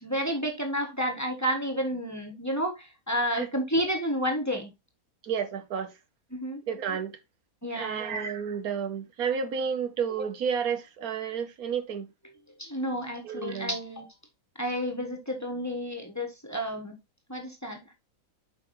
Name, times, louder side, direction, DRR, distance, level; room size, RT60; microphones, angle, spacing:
voice 1, 0.0-4.7 6.3-6.6 7.6-8.2 12.6-14.1 14.6-17.0 17.3-17.8, equal, 10° left, 1.2 m, -30 dB
voice 2, 5.2-5.9 6.7-7.2 7.7-12.1 13.2-13.8, right 7 dB, 85° right, 1.5 m, -31 dB
7.7 x 5.2 x 3.1 m
omnidirectional pair, 1.5 m